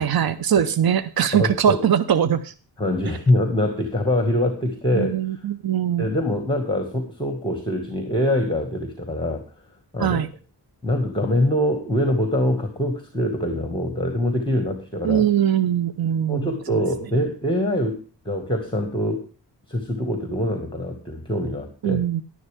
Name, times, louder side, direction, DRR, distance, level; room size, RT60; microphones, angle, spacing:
voice 1, 0.0-2.5 4.9-6.1 10.0-10.3 15.0-16.8 21.8-22.2, right 9 dB, 60° right, 12 dB, 0.8 m, -21 dB
voice 2, 1.3-1.8 2.8-5.4 6.0-9.4 9.9-10.2 10.8-15.2 16.3-19.2 19.7-22.0, left 1 dB, 10° left, 5 dB, 1.8 m, -24 dB
11.0 x 11.0 x 3.5 m, 0.38 s
wide cardioid pair, 105°, 41 cm